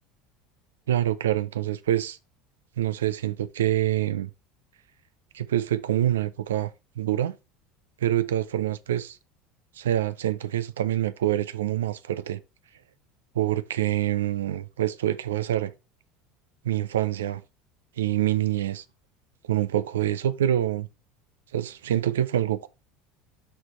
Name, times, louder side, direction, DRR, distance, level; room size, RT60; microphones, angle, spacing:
voice 1, 0.9-2.2 2.8-4.3 5.3-6.7 7.0-7.3 8.0-9.2 9.8-12.4 13.3-15.7 16.6-17.4 18.0-18.8 19.4-20.9 21.5-22.7, right 12 dB, 90° right, 0.4 m, -26 dB
7.5 x 4.3 x 3.1 m
hypercardioid pair, 85°, 0 cm